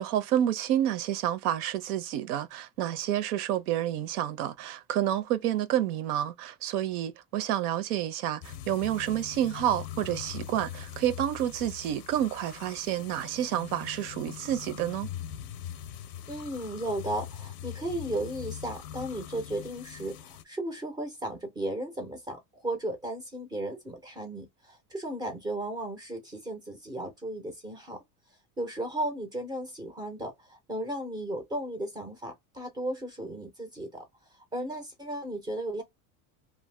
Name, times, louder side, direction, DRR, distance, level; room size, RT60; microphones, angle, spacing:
voice 1, 0.0-15.1, right 11 dB, 85° right, 0.7 m, -29 dB
sound 1, 8.4-20.4, left 10 dB, 50° left, 0.4 m, -42 dB
voice 2, 16.3-28.0 28.6-34.0 34.5-35.8, right 1 dB, 10° right, 0.4 m, -35 dB
2.6 x 2.1 x 3.1 m
cardioid pair, 165°, 44 cm